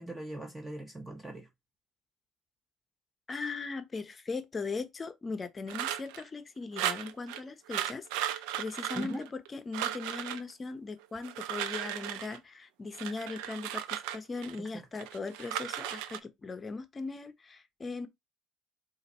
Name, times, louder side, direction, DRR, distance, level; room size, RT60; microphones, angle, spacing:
voice 1, 0.0-1.5 8.9-9.2 14.6-14.8, right 2 dB, 10° right, 0.9 m, -40 dB
voice 2, 3.3-18.1, left 4 dB, 25° left, 0.7 m, -39 dB
sound 1, 5.7-6.2 6.8-7.4 7.7-9.5 9.7-10.4 11.2-12.4 12.9-14.6 15.0-16.2, right 11 dB, 90° right, 0.5 m, -36 dB
4.0 x 2.6 x 4.2 m
cardioid pair, 110°, 0 cm